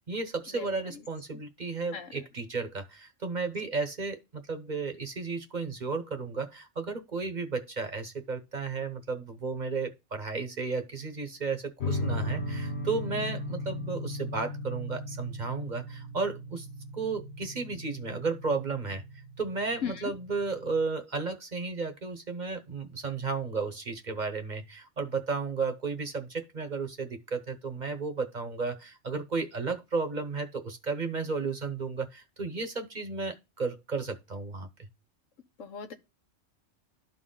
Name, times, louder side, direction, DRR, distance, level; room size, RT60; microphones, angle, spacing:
voice 1, 0.1-16.7 16.9-19.0 19.4-34.9, right 4 dB, 40° right, 0.9 m, -33 dB
sound 1, 11.8-20.8, left 1 dB, 60° left, 1.2 m, -37 dB
voice 2, 35.6-35.9, left 7 dB, 80° left, 1.3 m, -37 dB
12.0 x 4.0 x 3.8 m
omnidirectional pair, 1.3 m